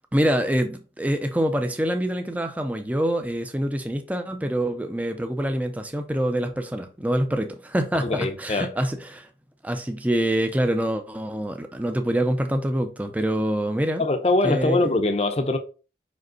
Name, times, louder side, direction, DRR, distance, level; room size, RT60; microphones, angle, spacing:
voice 1, 0.1-9.3 9.6-14.0 14.4-14.8, right 1 dB, 10° right, 0.5 m, -25 dB
voice 2, 8.0-8.7 14.0-15.6, left 2 dB, 35° left, 0.7 m, -22 dB
5.3 x 5.2 x 3.9 m
head